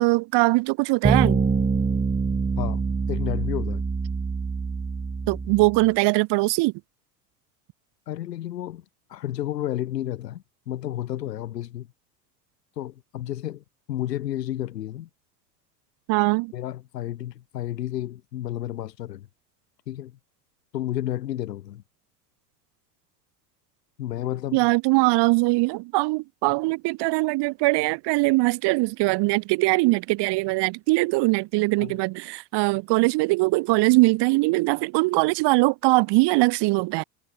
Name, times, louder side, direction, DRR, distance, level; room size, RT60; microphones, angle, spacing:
voice 1, 0.0-1.4 5.3-6.7 16.1-16.5 24.5-37.0, right 24 dB, 55° right, 4.6 m, -21 dB
sound 1, 1.0-5.8, right 4 dB, 15° right, 2.7 m, -25 dB
voice 2, 3.1-3.8 8.1-8.8 9.1-11.9 12.8-15.1 16.5-19.3 19.9-20.2 20.7-21.8 24.0-24.7 31.8-32.0, left 12 dB, 80° left, 4.6 m, -31 dB
hypercardioid pair, 85°, 48 cm